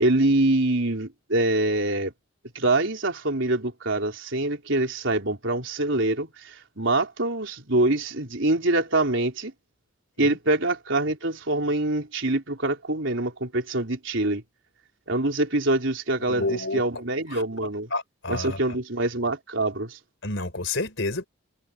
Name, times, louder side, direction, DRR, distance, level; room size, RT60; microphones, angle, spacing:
voice 1, 0.0-2.1 2.5-9.5 10.2-14.4 15.1-17.9 18.3-20.0, right 2 dB, 65° right, 4.2 m, -25 dB
voice 2, 16.2-16.8 17.3-17.4 17.9-18.6 20.2-21.3, left 2 dB, 65° left, 4.7 m, -29 dB
head